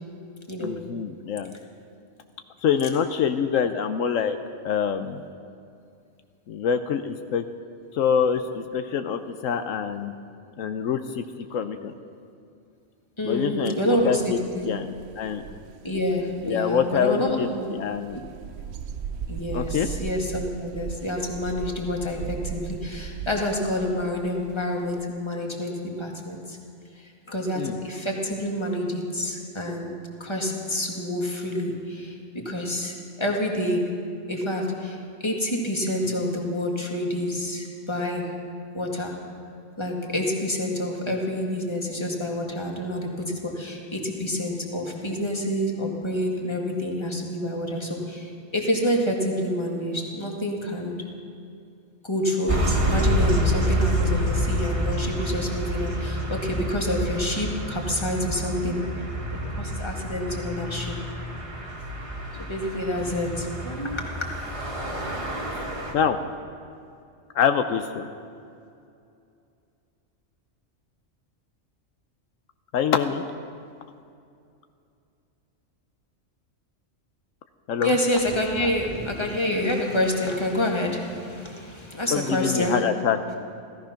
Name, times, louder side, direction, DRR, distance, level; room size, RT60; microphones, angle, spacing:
voice 1, 0.6-1.6 2.6-4.4 4.6-5.2 6.5-7.4 7.9-10.1 10.6-11.2 11.5-11.9 13.2-13.8 14.0-14.9 15.2-15.4 16.4-17.5 17.8-18.2 19.5-19.9 27.6-27.8 65.5-65.6 65.9-66.2 67.3-68.1 72.7-73.2 77.7-77.9 82.1-83.4, left 7 dB, 80° left, 8 dB, 1.1 m, -25 dB
voice 2, 13.2-14.7 15.8-17.6 19.3-26.6 27.0-29.9 30.2-33.8 34.3-38.3 38.7-39.2 39.8-50.9 52.0-58.9 59.3-61.0 62.4-64.4 77.8-82.8, left 1 dB, 20° left, 0 dB, 1.9 m, -28 dB
sound 1, 14.1-25.0, right 8 dB, 65° right, 0.8 m, -38 dB
sound 2, 52.5-65.9, equal, 25° right, 1.6 m, -28 dB
16.5 x 14.5 x 5.8 m, 2.5 s
omnidirectional pair, 1.3 m